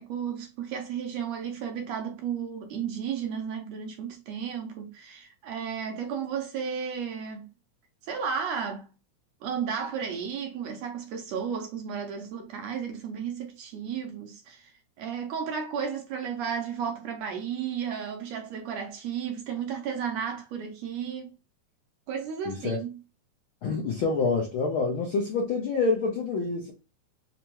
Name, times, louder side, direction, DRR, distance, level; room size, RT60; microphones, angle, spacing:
voice 1, 0.0-7.5 8.0-8.9 9.4-14.7 15.0-21.4 22.1-23.0, right 7 dB, 75° right, 1.6 m, -33 dB
voice 2, 22.4-22.8 23.6-26.7, left 4 dB, 70° left, 1.2 m, -27 dB
5.1 x 2.2 x 3.0 m
omnidirectional pair, 3.5 m